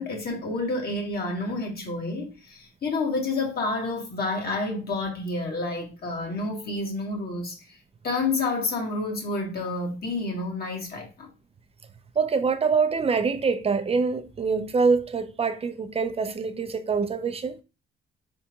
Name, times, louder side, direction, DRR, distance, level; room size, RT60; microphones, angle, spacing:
voice 1, 0.0-7.8 8.0-11.3, left 3 dB, 50° left, 1.9 m, -29 dB
voice 2, 12.2-17.6, right 5 dB, 30° right, 0.6 m, -25 dB
4.2 x 3.5 x 2.9 m
cardioid pair, 90°, 20 cm